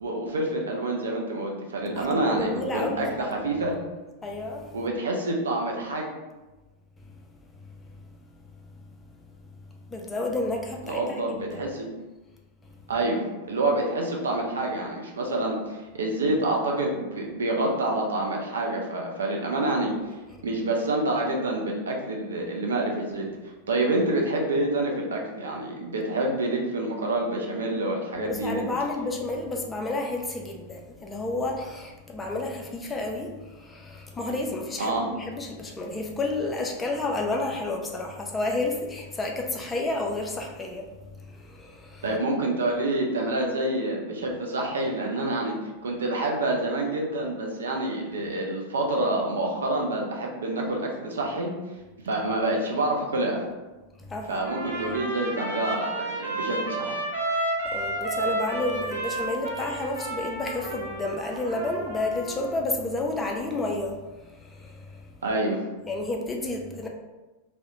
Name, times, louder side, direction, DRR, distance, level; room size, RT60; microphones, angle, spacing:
voice 1, 0.0-3.8 4.7-6.1 10.8-11.9 12.9-20.2 20.4-28.7 34.8-35.1 42.0-51.5 52.0-53.4 54.3-57.0 65.2-65.6, right 2 dB, 65° right, 0 dB, 0.5 m, -27 dB
voice 2, 2.0-3.4 4.2-4.8 7.1-7.2 7.6-7.7 8.0-8.1 8.5-8.7 9.1-9.3 9.8-11.3 11.5-11.7 12.6-12.9 28.1-42.1 54.0-54.5 57.6-65.2 65.9-66.9, left 2 dB, 15° left, 1 dB, 0.4 m, -31 dB
Trumpet, 54.4-62.6, right 1 dB, 85° right, 0.8 m, -31 dB
2.3 x 2.0 x 2.9 m, 1.1 s
figure-of-eight pair, 90°, 0 cm